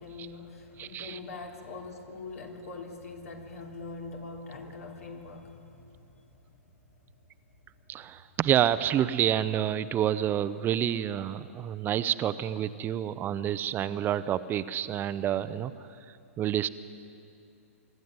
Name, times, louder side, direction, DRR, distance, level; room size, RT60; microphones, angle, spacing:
voice 1, 0.0-6.4, left 3 dB, 75° left, 1 dB, 3.4 m, -43 dB
voice 2, 0.8-1.2 7.9-15.7 16.4-16.7, right 10 dB, 25° right, 14 dB, 0.6 m, -28 dB
24.0 x 12.0 x 9.6 m, 2.5 s
hypercardioid pair, 120°, 8 cm